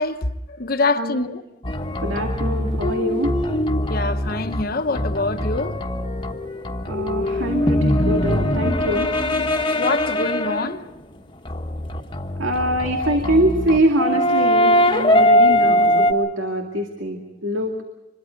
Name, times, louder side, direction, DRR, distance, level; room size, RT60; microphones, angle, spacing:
voice 1, 0.0-1.4 3.9-5.8 9.5-10.8 12.9-13.2, left 3 dB, 50° left, 1.1 m, -25 dB
sound 1, 1.6-10.8 11.5-16.1, left 1 dB, 25° left, 1.2 m, -21 dB
voice 2, 2.0-3.3 6.9-9.1 12.4-17.7, right 1 dB, 85° right, 2.3 m, -23 dB
26.0 x 22.0 x 5.3 m
head